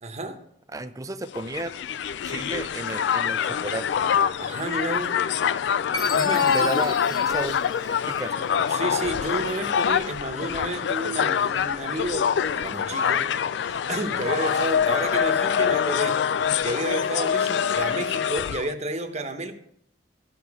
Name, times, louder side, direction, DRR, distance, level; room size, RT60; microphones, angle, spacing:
voice 1, 0.0-0.4 4.4-5.3 6.1-6.7 8.7-16.3 16.6-19.5, right 1 dB, 40° right, 1.0 m, -31 dB
voice 2, 0.7-1.7 2.2-3.9 6.5-7.6 8.1-8.5, right 2 dB, 20° right, 0.5 m, -33 dB
Crowd, 1.3-18.7, left 7 dB, 70° left, 0.3 m, -25 dB
sound 1, 1.3-16.7, left 2 dB, 50° left, 0.9 m, -51 dB
Chime, 5.9-8.5, left 2 dB, 20° left, 0.8 m, -35 dB
12.5 x 5.8 x 4.8 m
head